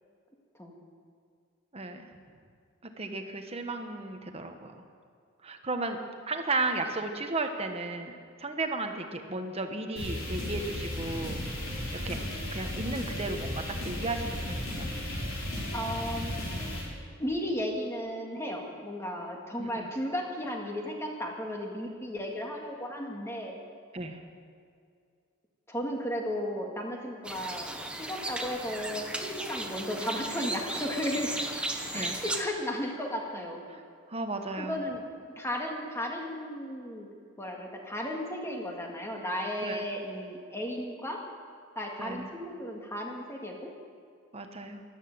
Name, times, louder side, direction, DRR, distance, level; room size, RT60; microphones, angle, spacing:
voice 1, 1.7-2.1 2.8-4.7 5.4-6.0 6.3-8.1 8.4-12.2 12.5-14.9 19.6-19.9 23.9-24.2 31.9-32.2 33.7-33.8 34.1-34.8 39.6-39.9 42.0-42.3 44.3-44.8, right 2 dB, 30° right, 5 dB, 1.2 m, -34 dB
sound 1, 10.0-16.8, left 1 dB, 70° left, 4.6 m, -35 dB
voice 2, 15.7-16.6 17.2-23.6 25.7-27.7 28.0-31.3 31.9-33.6 34.6-35.0 35.4-37.1 37.4-41.2 41.8-43.7, equal, 15° left, 0 dB, 1.9 m, -34 dB
sound 2, 27.2-32.4, right 1 dB, 5° right, 1.0 m, -36 dB
13.0 x 12.5 x 7.8 m, 2.3 s
head